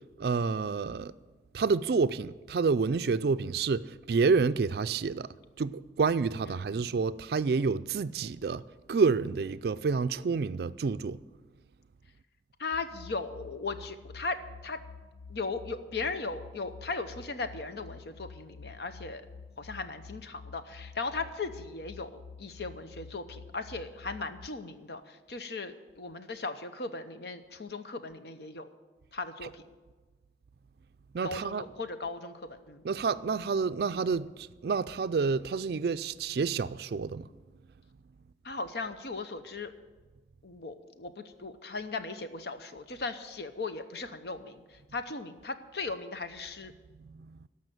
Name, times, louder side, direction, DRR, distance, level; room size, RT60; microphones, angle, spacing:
voice 1, 0.2-1.1 1.5-8.6 8.9-11.2 31.1-31.6 32.8-37.3 47.0-47.5, right 4 dB, 60° right, 0.4 m, -29 dB
voice 2, 6.5-6.9 12.6-14.8 15.3-19.2 19.6-22.1 22.4-28.7 29.1-29.6 31.2-32.8 38.4-39.7 40.4-44.6 44.9-46.7, left 3 dB, 65° left, 0.8 m, -37 dB
sound 1, 12.7-24.5, left 5 dB, 85° left, 0.4 m, -49 dB
14.0 x 5.7 x 9.1 m
head